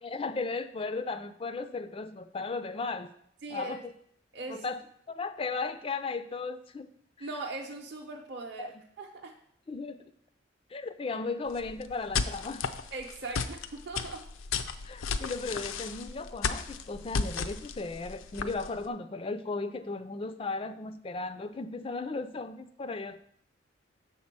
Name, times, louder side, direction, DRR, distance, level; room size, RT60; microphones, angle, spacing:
voice 1, 0.0-3.1 3.5-3.8 4.5-4.8 5.1-6.9 7.2-7.3 8.6-8.7 9.7-10.0 10.7-12.6 14.8-23.2, left 3 dB, 30° left, 11 dB, 0.3 m, -36 dB
voice 2, 3.4-3.8 4.3-4.7 7.2-8.7 9.0-9.3 12.9-14.2, right 3 dB, 55° right, -1 dB, 0.7 m, -39 dB
sound 1, 11.5-18.9, left 5 dB, 85° left, 0.5 m, -34 dB
6.7 x 4.3 x 5.9 m, 0.68 s
head